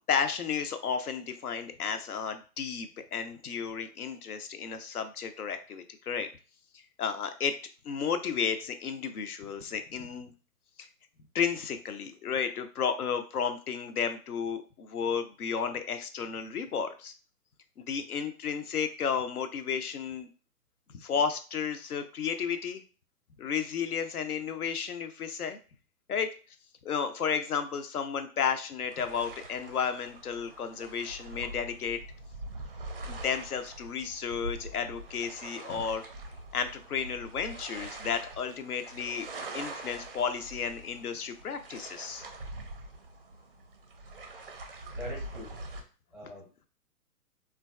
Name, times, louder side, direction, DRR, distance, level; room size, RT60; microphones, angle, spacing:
voice 1, 0.1-6.3 6.7-7.5 7.8-10.3 10.8-10.9 11.3-17.1 17.9-20.3 20.9-22.8 23.4-25.6 26.1-26.3 26.8-32.0 33.1-36.0 36.5-39.3 39.5-42.2, left 6 dB, 70° left, 8 dB, 0.5 m, -33 dB
sound 1, 28.8-45.8, right 2 dB, 40° right, 0.4 m, -44 dB
voice 2, 44.6-45.5 46.1-46.7, left 1 dB, 10° left, -4 dB, 0.7 m, -44 dB
3.7 x 2.3 x 2.3 m, 0.36 s
figure-of-eight pair, 130°, 47 cm